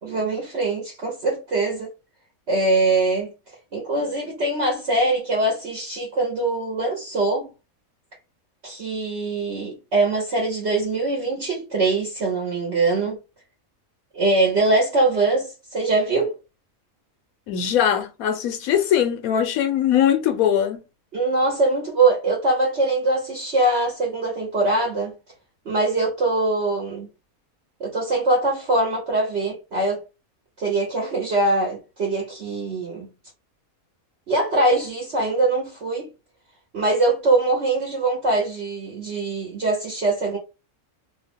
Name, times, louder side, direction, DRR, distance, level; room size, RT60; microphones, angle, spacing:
voice 1, 0.0-1.9 2.5-3.3 3.7-7.5 8.6-13.2 14.1-16.3 21.1-25.1 25.6-27.1 27.8-30.0 30.6-33.1 34.3-36.1 36.7-40.4, right 2 dB, 55° right, 1.1 m, -22 dB
voice 2, 17.5-20.8, left 9 dB, 80° left, 1.1 m, -21 dB
2.8 x 2.5 x 3.4 m
omnidirectional pair, 1.5 m